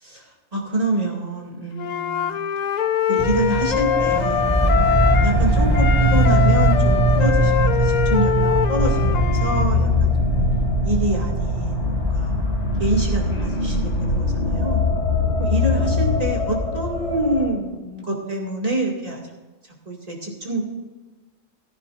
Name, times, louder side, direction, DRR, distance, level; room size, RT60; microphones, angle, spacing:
voice 1, 0.5-2.4 3.1-4.6 5.2-10.1 10.3-10.4 10.8-12.3 12.8-14.8 15.4-19.2 19.9-20.6, right 1 dB, 30° right, -2 dB, 2.3 m, -26 dB
Wind instrument woodwind instrument, 1.8-5.4 5.7-9.7, left 9 dB, 90° left, 0.3 m, -23 dB
sound 1, 3.2-13.4, right 2 dB, 15° left, 1.6 m, -21 dB
sound 2, 8.8-17.5, left 3 dB, 60° left, 2.6 m, -22 dB
15.0 x 14.5 x 2.5 m, 1.3 s
omnidirectional pair, 1.4 m